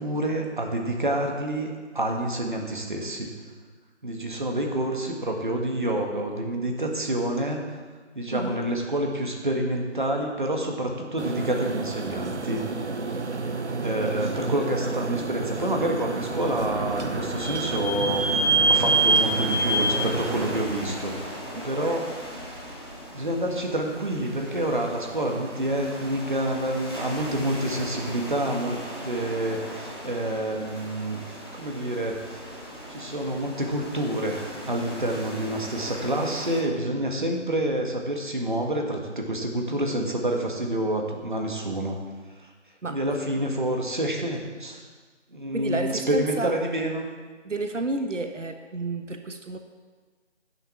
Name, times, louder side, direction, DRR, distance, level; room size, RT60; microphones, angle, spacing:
voice 1, 0.0-3.3 4.0-7.6 8.1-12.6 13.8-21.2 21.6-22.1 23.1-32.4 32.9-42.0 42.4-42.5 42.9-44.8 45.3-47.0, right 1 dB, 40° right, 1 dB, 1.7 m, -28 dB
voice 2, 8.3-8.6 21.5-22.1 42.8-43.7 45.5-46.5 47.4-49.6, right 3 dB, 90° right, 6 dB, 1.4 m, -32 dB
sound 1, 11.2-20.6, right 3 dB, 70° right, 1.0 m, -31 dB
Vehicle / Squeak, 16.2-21.6, right 2 dB, 55° left, 2.3 m, -26 dB
sound 2, 18.7-36.6, equal, 20° left, 1.4 m, -39 dB
10.5 x 7.9 x 7.2 m, 1.4 s
figure-of-eight pair, 180°, 36 cm